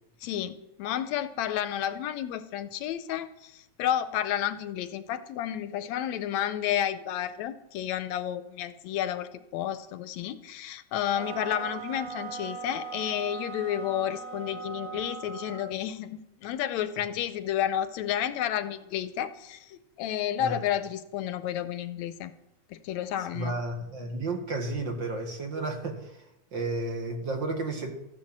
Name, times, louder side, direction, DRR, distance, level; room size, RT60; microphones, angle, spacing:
voice 1, 0.2-22.3 22.7-23.5, left 10 dB, 80° left, 12 dB, 1.9 m, -31 dB
sound 1, 11.1-15.8, right 5 dB, 85° right, 2.7 m, -39 dB
voice 2, 23.3-26.2 26.5-27.9, right 2 dB, 45° right, 3 dB, 2.0 m, -32 dB
14.5 x 10.5 x 7.3 m, 0.88 s
omnidirectional pair, 3.3 m